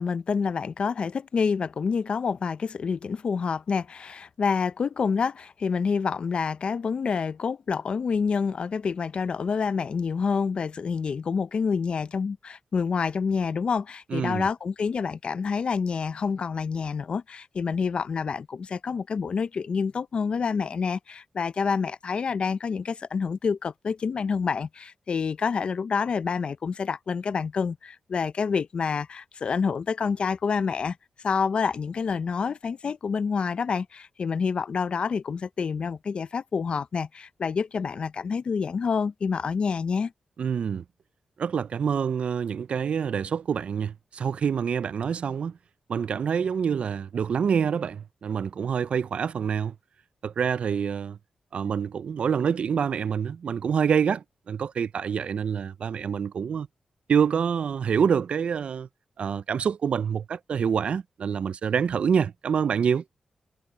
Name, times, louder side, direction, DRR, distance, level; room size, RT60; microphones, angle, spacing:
voice 1, 0.0-31.0 31.2-40.1, left 5 dB, 50° left, 0.5 m, -28 dB
voice 2, 14.1-14.5 40.4-40.8 41.4-45.6 45.9-49.7 50.2-51.2 51.5-56.7 57.1-58.9 59.2-63.0, right 7 dB, 60° right, 0.3 m, -26 dB
wide cardioid pair, 120°, 2 cm